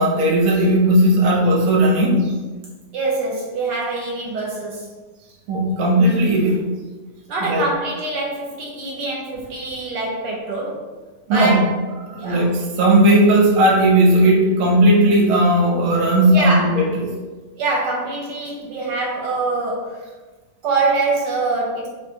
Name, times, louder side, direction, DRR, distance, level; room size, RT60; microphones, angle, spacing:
voice 1, 0.0-2.3 5.5-6.6 7.4-7.6 11.3-11.6 12.1-17.1, right 1 dB, 55° right, -3 dB, 1.0 m, -16 dB
voice 2, 2.9-4.9 7.3-10.9 11.3-11.7 12.2-12.5 16.3-16.9 17.6-20.1 20.6-21.9, right 3 dB, 75° right, -3 dB, 1.2 m, -24 dB
5.1 x 2.2 x 2.7 m, 1.3 s
omnidirectional pair, 1.9 m